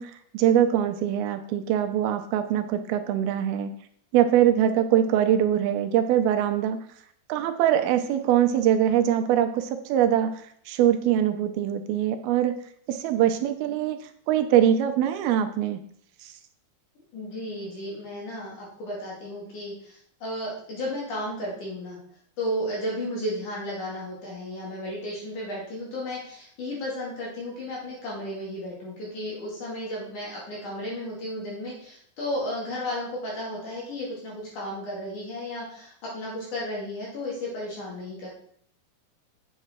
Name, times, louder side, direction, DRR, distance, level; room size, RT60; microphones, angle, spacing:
voice 1, 0.0-3.7 4.1-6.8 7.3-12.5 12.9-14.0 14.3-15.8 16.2-16.3, right 10 dB, 85° right, 7 dB, 2.6 m, -23 dB
voice 2, 17.1-22.0 22.4-38.3, left 1 dB, 55° left, -4 dB, 3.6 m, -33 dB
7.9 x 7.3 x 4.4 m, 0.63 s
omnidirectional pair, 4.5 m